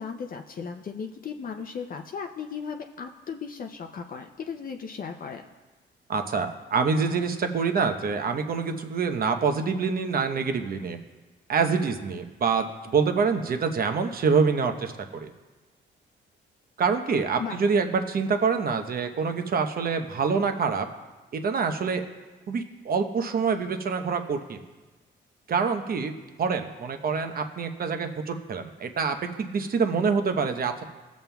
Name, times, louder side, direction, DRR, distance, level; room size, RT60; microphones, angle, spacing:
voice 1, 0.0-5.5 17.4-17.6, left 6 dB, 45° left, 4 dB, 0.6 m, -36 dB
voice 2, 6.1-11.0 11.5-15.3 16.8-20.9 21.4-22.0 22.5-24.6 25.5-26.1 26.4-30.8, right 5 dB, 50° right, 6 dB, 0.9 m, -26 dB
17.5 x 7.2 x 2.3 m, 1.2 s
cardioid pair, 90°, 20 cm